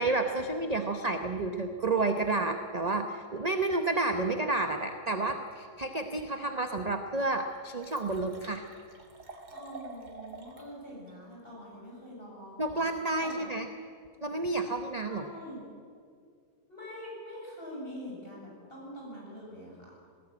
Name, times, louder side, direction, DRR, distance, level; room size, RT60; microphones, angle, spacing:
voice 1, 0.0-8.6 12.6-13.7 14.2-15.2, right 2 dB, 30° right, 6 dB, 0.9 m, -30 dB
Liquid, 6.6-6.7 7.2-7.3 7.5-10.7 11.1-11.2, right 3 dB, 85° right, 2.9 m, -48 dB
voice 2, 9.5-12.7 13.2-13.5 15.1-15.7 16.7-19.9, equal, 35° left, -4 dB, 7.5 m, -44 dB
19.5 x 17.5 x 8.5 m, 2.2 s
omnidirectional pair, 1.6 m